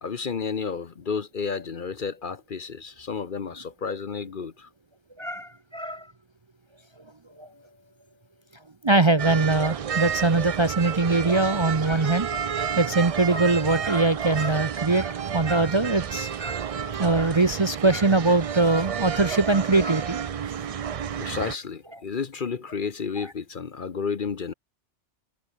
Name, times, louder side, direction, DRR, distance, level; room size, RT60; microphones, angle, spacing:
voice 1, 0.0-4.7 7.3-7.8 21.2-24.5, left 5 dB, 45° left, 1.0 m, -32 dB
voice 2, 5.2-6.1 7.4-7.5 8.8-20.2, right 3 dB, 30° right, 0.7 m, -22 dB
sound 1, 9.2-21.6, right 8 dB, 55° right, 0.4 m, -31 dB
omnidirectional pair, 1.2 m